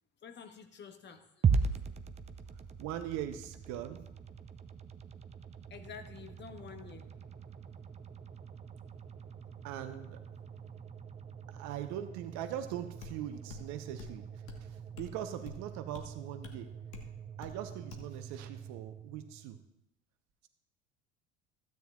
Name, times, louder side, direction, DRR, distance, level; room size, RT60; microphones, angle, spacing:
voice 1, 0.2-1.2 1.5-1.7 5.7-7.1, left 6 dB, 30° left, 6 dB, 1.2 m, -49 dB
sound 1, 1.4-19.7, right 5 dB, 20° right, 0.6 m, -40 dB
voice 2, 2.8-4.0 9.6-10.2 11.5-14.3 14.6-16.8 17.4-19.6, right 11 dB, 50° right, 9 dB, 1.0 m, -41 dB
sound 2, 13.0-13.2 13.5-13.7 14.0-14.2 14.5-14.6 15.0-15.1 15.5-15.6 15.9-16.1 16.4-16.6 16.9-17.1 17.4-17.6 17.9-18.1, left 7 dB, 65° left, 1.5 m, -48 dB
15.5 x 9.2 x 2.4 m, 0.82 s
figure-of-eight pair, 65°, 35 cm